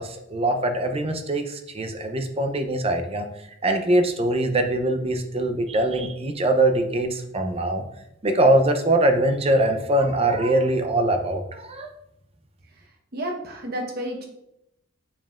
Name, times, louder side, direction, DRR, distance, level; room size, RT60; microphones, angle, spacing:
voice 1, 0.0-3.3 3.6-7.8 8.2-11.9, right 1 dB, 30° right, 6 dB, 0.6 m, -22 dB
voice 2, 12.8-14.3, equal, 50° right, 2 dB, 1.1 m, -32 dB
7.3 x 5.4 x 2.5 m, 0.81 s
head